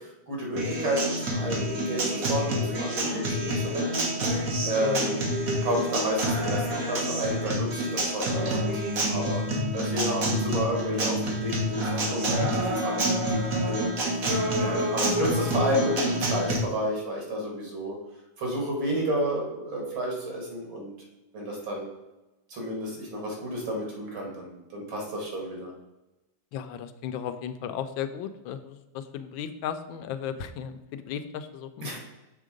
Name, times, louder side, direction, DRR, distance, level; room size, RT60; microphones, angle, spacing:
voice 1, 0.3-4.4 4.6-5.2 5.6-14.3 14.6-18.0 18.4-20.9 21.3-21.9 22.5-25.7 31.8-32.0, equal, 85° right, -1 dB, 2.7 m, -31 dB
Acoustic guitar, 0.6-16.6, equal, 50° right, 1.5 m, -28 dB
voice 2, 4.8-5.2 9.5-9.8 12.4-12.5 26.5-31.9, left 8 dB, 85° left, 10 dB, 1.3 m, -35 dB
6.8 x 3.7 x 5.1 m, 1.0 s
omnidirectional pair, 2.1 m